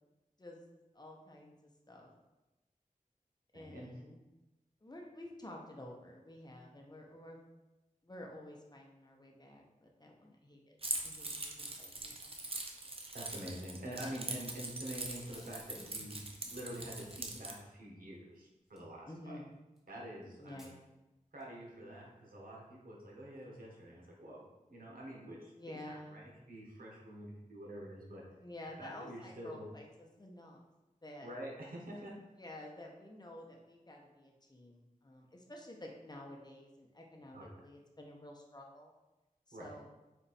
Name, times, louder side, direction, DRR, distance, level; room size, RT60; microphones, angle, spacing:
voice 1, 0.9-1.5 1.9-2.1 3.5-4.2 4.8-7.4 8.0-10.8 11.0-12.4 19.1-19.5 20.4-20.8 25.5-26.2 28.4-30.6 31.0-31.3 32.4-38.9 39.5-39.9, left 1 dB, 30° left, 0 dB, 0.8 m, -51 dB
voice 2, 3.5-3.9 13.1-19.4 19.9-20.7 21.3-28.2 28.8-29.6 31.2-32.1 37.3-37.5 39.5-39.7, right 1 dB, 90° right, -4 dB, 1.1 m, -47 dB
Keys jangling, 10.8-17.5, right 2 dB, 40° right, 0.6 m, -42 dB
Packing tape duct tape / Tearing, 13.7-13.8 15.0-17.6 18.8-18.9 19.8-19.9 20.5-20.7 21.4-21.5, equal, ahead, 1.4 m, -59 dB
4.4 x 2.5 x 4.1 m, 1.0 s
wide cardioid pair, 70°, 14 cm